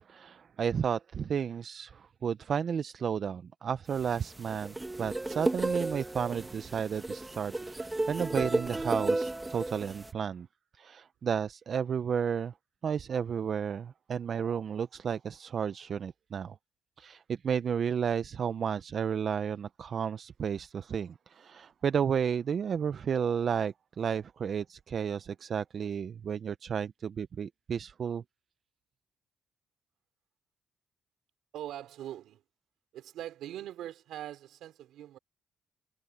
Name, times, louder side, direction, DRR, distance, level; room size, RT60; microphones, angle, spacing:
voice 1, 0.0-10.5 10.8-12.5 12.8-16.6 17.0-28.2, right 7 dB, 50° right, 0.6 m, -32 dB
sound 1, 4.0-10.1, right 2 dB, 15° right, 1.5 m, -33 dB
voice 2, 31.5-32.4 32.9-35.2, right 12 dB, 80° right, 4.1 m, -42 dB
cardioid pair, 90°, 0 cm